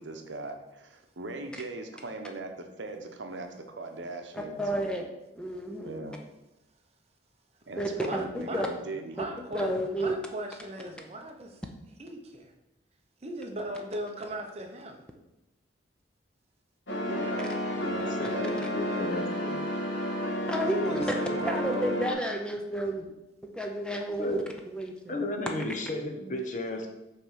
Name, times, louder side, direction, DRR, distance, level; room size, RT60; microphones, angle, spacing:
voice 1, 0.0-4.6 5.8-6.2 7.7-9.2 17.1-17.4 17.7-18.6 18.8-19.1, right 2 dB, 80° right, 5 dB, 0.8 m, -39 dB
voice 2, 4.3-5.1 5.4-5.9 7.8-8.7 9.5-10.2 20.5-21.0 21.4-23.1 23.4-24.4 24.7-25.2, right 1 dB, 5° left, 2 dB, 0.6 m, -31 dB
voice 3, 8.0-8.6 9.1-11.6 12.0-12.5 13.2-15.0 20.4-20.5 20.9-21.9, right 1 dB, 35° right, 3 dB, 0.8 m, -38 dB
sound 1, 16.9-22.1, equal, 90° left, 1.4 m, -31 dB
voice 4, 18.2-19.6 24.2-24.4 25.1-26.9, left 1 dB, 45° left, 4 dB, 0.8 m, -34 dB
5.8 x 3.3 x 5.6 m, 0.93 s
head